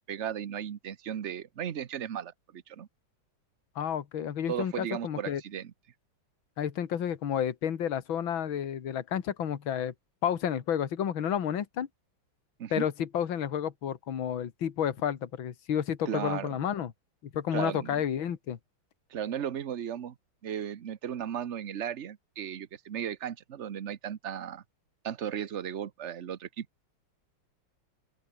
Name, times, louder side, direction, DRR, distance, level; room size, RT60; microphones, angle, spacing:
voice 1, 0.0-2.9 4.5-5.7 12.6-12.8 16.0-16.5 17.5-18.0 19.1-20.1 20.4-24.6 25.0-26.7, right 9 dB, 60° right, 0.7 m, -36 dB
voice 2, 3.8-5.4 6.6-9.9 10.2-11.9 12.7-16.9 17.3-18.6, left 9 dB, 65° left, 2.4 m, -31 dB
open air
omnidirectional pair, 2.4 m